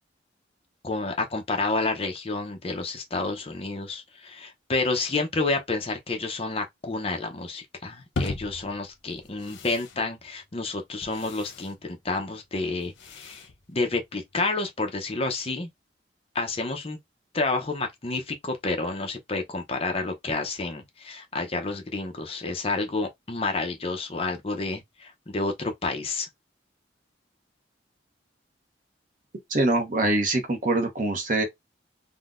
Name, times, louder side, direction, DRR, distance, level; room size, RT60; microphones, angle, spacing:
voice 1, 0.8-13.4 13.7-15.7 16.3-17.0 17.3-26.3, left 3 dB, 30° left, 0.6 m, -29 dB
sound 1, 8.1-14.4, left 2 dB, 85° left, 0.7 m, -39 dB
voice 2, 29.5-31.4, right 2 dB, 45° right, 0.7 m, -24 dB
3.6 x 2.2 x 2.4 m
head